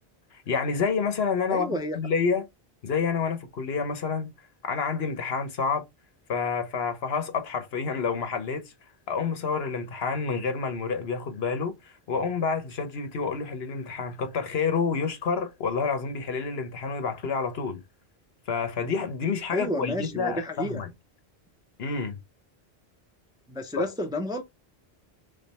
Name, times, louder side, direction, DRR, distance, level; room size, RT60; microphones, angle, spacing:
voice 1, 0.3-2.5 2.8-4.3 4.6-5.8 6.3-8.7 9.1-17.8 18.5-20.9 21.8-22.2 23.8-23.9, left 5 dB, 70° left, 1.1 m, -28 dB
voice 2, 1.5-2.0 19.5-20.8 23.5-24.4, equal, 5° right, 0.5 m, -31 dB
3.9 x 3.3 x 4.1 m
omnidirectional pair, 1.1 m